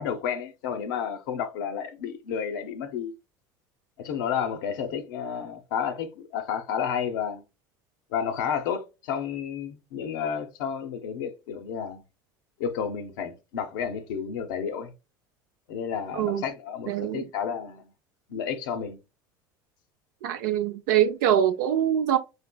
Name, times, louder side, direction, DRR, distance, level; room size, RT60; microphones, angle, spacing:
voice 1, 0.0-3.1 4.0-7.4 8.1-12.0 12.6-14.9 15.7-17.9 18.3-19.0, left 7 dB, 80° left, 0.7 m, -31 dB
voice 2, 16.1-16.4 16.9-17.3 20.2-22.2, right 10 dB, 75° right, 0.5 m, -24 dB
4.2 x 2.9 x 2.2 m
supercardioid pair, 95°, 11 cm